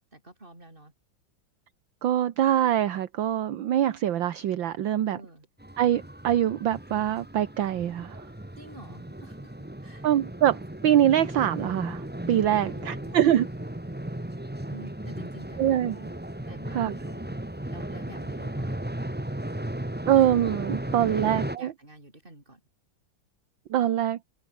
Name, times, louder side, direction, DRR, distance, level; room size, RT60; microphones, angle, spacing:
voice 1, 0.1-0.9 5.0-5.5 8.6-9.5 9.8-10.1 12.6-13.3 14.7-16.1 16.5-17.4 17.7-18.8 20.8-21.3 21.5-22.6, right 1 dB, 20° right, 5.9 m, -49 dB
voice 2, 2.0-5.2 5.8-8.2 10.0-13.5 15.6-16.0 16.7-17.0 20.1-21.7 23.7-24.2, right 11 dB, 65° right, 1.8 m, -24 dB
sound 1, 5.6-21.6, right 1 dB, 5° right, 1.4 m, -36 dB
omnidirectional pair, 2.4 m